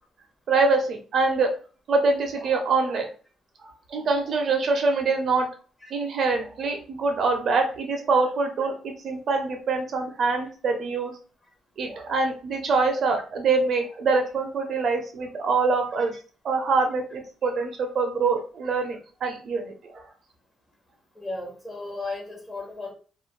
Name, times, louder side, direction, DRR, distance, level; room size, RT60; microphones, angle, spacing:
voice 1, 0.5-1.5 1.9-3.1 3.6-5.5 5.9-11.1 11.8-16.2 16.4-20.1, right 4 dB, 60° right, 3 dB, 0.6 m, -24 dB
voice 2, 21.2-22.9, left 2 dB, 20° left, -1 dB, 1.1 m, -35 dB
2.4 x 2.1 x 3.2 m, 0.38 s
cardioid pair, 90°, 0 cm